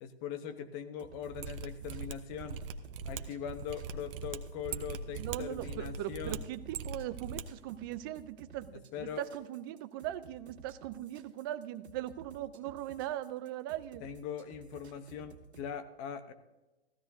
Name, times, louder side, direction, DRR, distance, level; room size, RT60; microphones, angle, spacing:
voice 1, 0.0-2.6 3.0-6.4 8.9-9.2 14.0-16.3, left 8 dB, 30° left, 10 dB, 0.9 m, -41 dB
sound 1, 1.0-15.7, right 5 dB, 90° right, 1.7 m, -55 dB
Mechanisms, 1.3-7.4 7.7-7.8, right 6 dB, 60° right, 1.1 m, -41 dB
voice 2, 5.2-14.0, right 13 dB, 20° right, 12 dB, 0.4 m, -40 dB
15.0 x 13.5 x 2.7 m, 1.1 s
hypercardioid pair, 135°, 32 cm